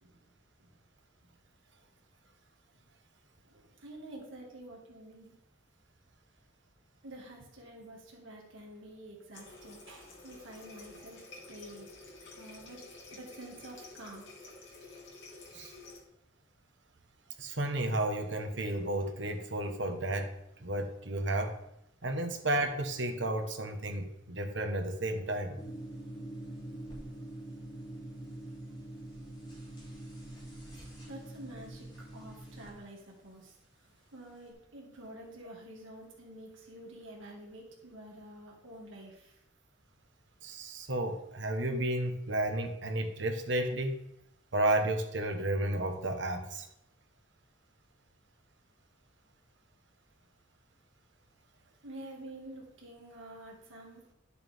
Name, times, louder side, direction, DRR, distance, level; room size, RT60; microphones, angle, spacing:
voice 1, 3.4-5.4 7.0-12.0 12.3-12.8 13.1-14.3 31.1-31.9 32.1-33.5 33.8-39.4 51.8-54.0, right 1 dB, 80° right, -1 dB, 2.0 m, -49 dB
Water tap faucet, 9.3-16.0, left 2 dB, 75° left, 2.5 m, -51 dB
voice 2, 17.4-20.3 20.6-21.5 22.0-25.6 40.4-44.0 44.5-46.7, right 1 dB, 65° right, 4 dB, 1.3 m, -32 dB
sound 1, 25.6-32.7, right 1 dB, 25° left, 3.4 m, -45 dB
11.5 x 6.8 x 3.6 m, 0.81 s
head